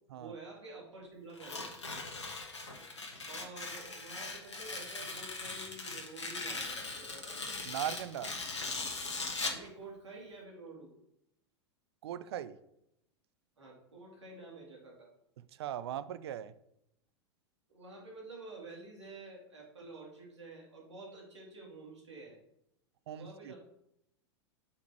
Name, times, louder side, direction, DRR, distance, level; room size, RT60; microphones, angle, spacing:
voice 1, 0.1-1.7 3.3-7.4 9.5-10.9 13.6-15.1 17.7-22.4 23.1-23.6, right 3 dB, 80° right, -2 dB, 2.6 m, -49 dB
Tearing, 1.3-9.7, left 3 dB, 85° left, 1.4 m, -40 dB
voice 2, 7.7-8.3 12.0-12.6 15.6-16.5 23.1-23.5, right 11 dB, 65° right, 14 dB, 0.5 m, -39 dB
5.4 x 5.1 x 6.4 m, 0.80 s
figure-of-eight pair, 95°, 15 cm